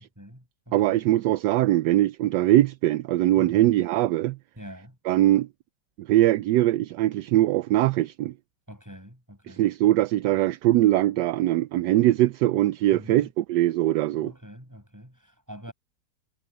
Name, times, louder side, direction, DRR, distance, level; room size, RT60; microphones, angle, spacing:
voice 1, 0.2-1.0 3.4-3.7 4.6-5.0 8.7-9.7 12.9-13.3 14.2-15.7, equal, 10° right, 7.2 m, -44 dB
voice 2, 0.7-4.4 5.0-5.5 6.0-8.3 9.5-14.3, right 14 dB, 75° right, 1.1 m, -22 dB
omnidirectional pair, 2.0 m